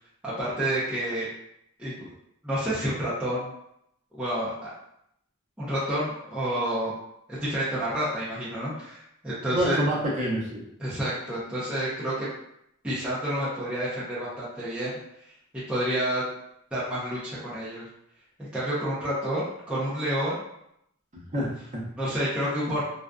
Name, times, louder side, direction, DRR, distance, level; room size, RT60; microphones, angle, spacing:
voice 1, 0.2-1.3 1.8-1.9 2.4-3.5 4.1-4.7 5.6-6.9 7.3-9.8 10.8-12.3 12.8-14.9 15.7-16.3 16.7-17.8 18.4-20.4 21.3-21.5 22.0-22.8, right 1 dB, 5° right, -11 dB, 0.6 m, -29 dB
voice 2, 9.5-10.6 21.1-21.8 22.4-22.8, right 1 dB, 35° right, -7 dB, 0.8 m, -28 dB
2.5 x 2.3 x 2.3 m, 0.76 s
head